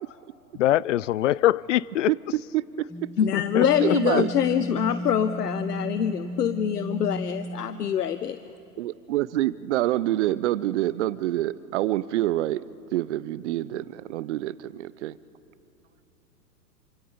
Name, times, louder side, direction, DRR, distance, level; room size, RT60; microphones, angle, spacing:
voice 1, 0.6-2.1 3.3-4.2, left 14 dB, 55° left, 0.5 m, -23 dB
voice 2, 2.1-3.1 3.6-4.3 8.8-12.6 12.9-15.2, right 14 dB, 50° right, 0.8 m, -27 dB
sound 1, 2.9-8.2, equal, ahead, 0.5 m, -35 dB
voice 3, 3.2-8.4, left 8 dB, 80° left, 0.9 m, -25 dB
27.5 x 25.5 x 5.3 m
hypercardioid pair, 115°, 47 cm